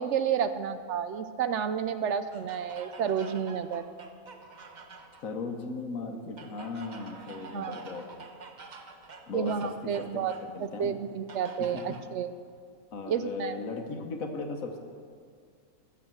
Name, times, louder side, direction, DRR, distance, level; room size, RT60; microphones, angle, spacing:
voice 1, 0.0-3.9 7.5-7.8 9.3-10.3 10.6-12.3 13.1-13.6, right 8 dB, 65° right, 11 dB, 0.8 m, -30 dB
sound 1, 2.3-5.3 6.4-10.5 11.3-12.1, right 4 dB, 40° right, 0.8 m, -48 dB
voice 2, 5.2-8.1 9.3-11.0 11.6-12.0 12.9-14.8, left 3 dB, 80° left, 5 dB, 1.6 m, -37 dB
14.5 x 6.7 x 7.6 m, 2.1 s
omnidirectional pair, 1.4 m